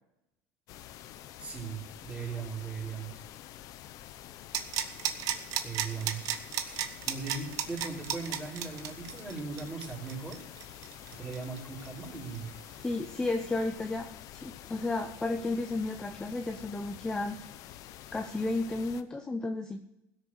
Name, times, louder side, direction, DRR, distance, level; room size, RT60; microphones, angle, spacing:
sound 1, 0.7-19.0, left 12 dB, 55° left, 0.9 m, -48 dB
voice 1, 1.4-3.2 5.6-6.3 6.6-10.4 11.2-12.5, right 4 dB, 15° right, -3 dB, 4.5 m, -39 dB
sound 2, 4.5-12.1 12.3-12.4, right 10 dB, 55° right, 1.2 m, -33 dB
voice 2, 12.8-17.4 18.1-19.8, left 2 dB, 10° left, 6 dB, 0.8 m, -33 dB
16.5 x 6.8 x 6.4 m, 0.85 s
cardioid pair, 135°, 7 cm